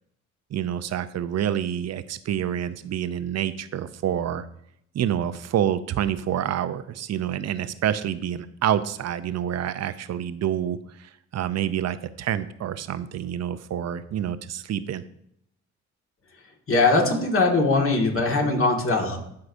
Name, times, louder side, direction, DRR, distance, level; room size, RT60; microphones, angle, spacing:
voice 1, 0.5-4.4 4.9-15.0, right 10 dB, 55° right, 13 dB, 0.6 m, -27 dB
voice 2, 16.7-19.2, left 3 dB, 45° left, 1 dB, 1.9 m, -21 dB
12.5 x 4.7 x 2.6 m, 0.73 s
supercardioid pair, 65°, 31 cm